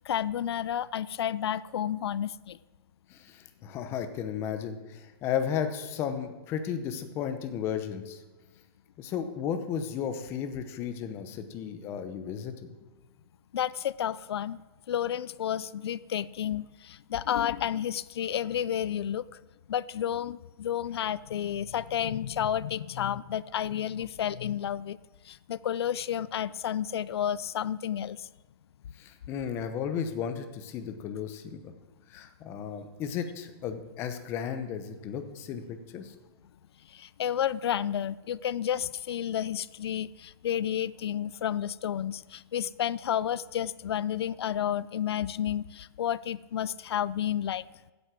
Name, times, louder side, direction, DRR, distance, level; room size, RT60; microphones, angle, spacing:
voice 1, 0.1-2.6 13.5-14.6 14.9-19.3 19.7-25.0 25.3-28.3 36.9-47.6, left 10 dB, 90° left, 19 dB, 0.4 m, -31 dB
voice 2, 3.1-8.2 9.0-12.5 29.0-31.6 32.1-36.1, left 8 dB, 20° left, 8 dB, 0.9 m, -34 dB
15.5 x 8.3 x 6.0 m, 1.2 s
hypercardioid pair, 175°, 13 cm